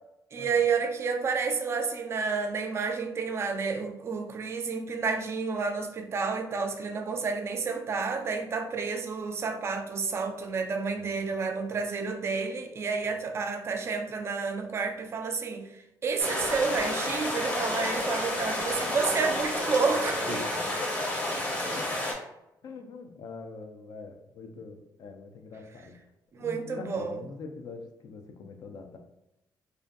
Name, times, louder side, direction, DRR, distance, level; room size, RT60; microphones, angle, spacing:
voice 1, 0.3-20.4 26.3-27.2, right 5 dB, 35° right, 0.3 m, -30 dB
voice 2, 10.9-11.3 13.0-13.2 20.3-20.8 21.7-22.0 22.6-26.1 26.4-29.0, left 4 dB, 60° left, 0.4 m, -44 dB
sound 1, 16.2-22.1, left 1 dB, 25° left, 0.7 m, -30 dB
2.6 x 2.5 x 2.2 m
cardioid pair, 115°, 7 cm